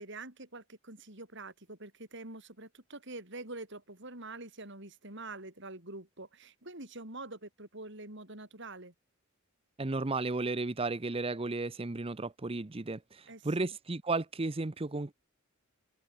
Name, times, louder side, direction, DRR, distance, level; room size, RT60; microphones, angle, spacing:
voice 1, 0.0-8.9 13.3-13.8, right 2 dB, 60° right, 7.0 m, -46 dB
voice 2, 9.8-15.1, right 3 dB, 30° right, 0.7 m, -34 dB
head